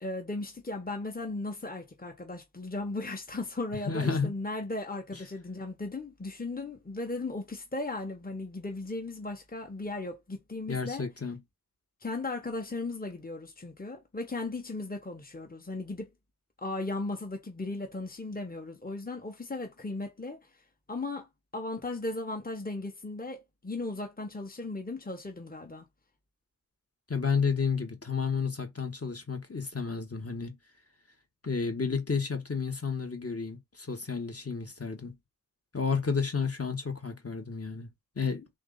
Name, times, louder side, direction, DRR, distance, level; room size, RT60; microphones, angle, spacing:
voice 1, 0.0-11.1 12.0-16.1 16.6-20.4 20.9-21.3 21.5-25.9, left 2 dB, 30° left, 1.0 m, -36 dB
voice 2, 3.8-4.3 10.7-11.4 27.1-30.6 31.4-35.2 35.7-37.9 38.2-38.5, left 5 dB, 45° left, 1.3 m, -31 dB
3.6 x 2.7 x 3.9 m
wide cardioid pair, 50°, 32 cm